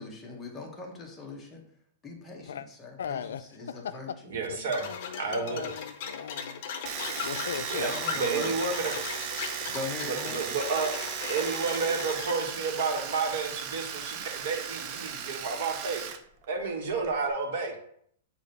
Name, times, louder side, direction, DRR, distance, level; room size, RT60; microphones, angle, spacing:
voice 1, 0.0-1.6 2.0-4.7 5.3-5.4 7.8-8.6 9.6-10.4, left 3 dB, 10° left, 1.1 m, -41 dB
voice 2, 3.0-4.2 4.5-6.6 7.2-7.8 8.2-8.5, left 8 dB, 80° left, 0.4 m, -39 dB
voice 3, 4.3-4.9 5.2-5.7 7.7-7.9 8.2-9.0 10.0-10.9 11.3-16.1 16.5-17.7, right 4 dB, 55° right, 1.6 m, -31 dB
sound 1, 4.7-12.5, left 6 dB, 40° left, 0.9 m, -38 dB
Domestic sounds home sounds, 6.9-16.2 16.4-17.3, right 8 dB, 30° right, 0.6 m, -36 dB
8.1 x 2.8 x 5.3 m
hypercardioid pair, 165°, 0 cm